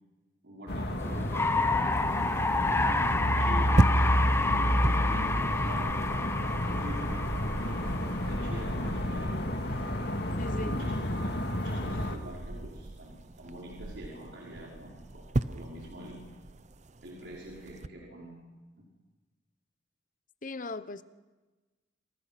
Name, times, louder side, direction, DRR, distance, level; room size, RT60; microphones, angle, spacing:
voice 1, 0.4-1.6 2.4-3.0 3.4-6.0 6.7-9.8 10.5-16.2 17.0-18.4 18.8-18.9, equal, 75° right, -4 dB, 5.4 m, -45 dB
sound 1, 0.7-12.2, equal, 65° left, 2.4 m, -30 dB
sound 2, 1.0-9.0, left 3 dB, 15° left, 1.1 m, -30 dB
sound 3, 1.9-17.9, right 2 dB, 40° right, 0.8 m, -37 dB
voice 2, 10.4-10.7 20.4-21.0, left 3 dB, 50° left, 13 dB, 1.1 m, -38 dB
28.0 x 26.5 x 6.1 m, 1.2 s
head